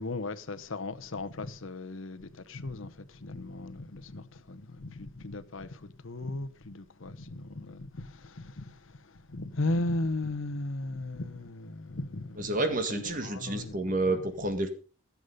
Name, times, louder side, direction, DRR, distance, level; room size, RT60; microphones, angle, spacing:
voice 1, 0.0-12.6 12.9-14.3, left 2 dB, 75° left, 0.9 m, -36 dB
voice 2, 12.4-14.7, right 2 dB, 40° right, 1.8 m, -29 dB
15.0 x 7.3 x 5.3 m
head